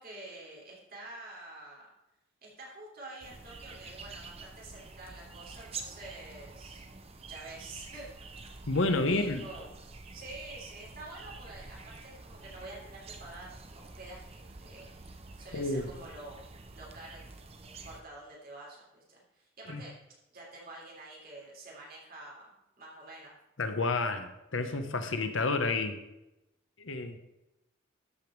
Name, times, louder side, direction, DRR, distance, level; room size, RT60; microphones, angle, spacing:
voice 1, 0.0-1.9 2.4-6.8 7.2-8.4 9.0-9.8 10.1-17.3 17.6-19.9 20.3-22.5 22.8-23.4, right 2 dB, 45° right, -4 dB, 3.3 m, -48 dB
sound 1, 3.2-18.0, right 3 dB, 30° right, 0.7 m, -48 dB
voice 2, 8.7-9.4 15.5-15.9 19.7-19.8 23.6-26.0 26.8-27.2, left 3 dB, 75° left, 8 dB, 1.0 m, -30 dB
13.0 x 5.3 x 4.6 m, 0.94 s
head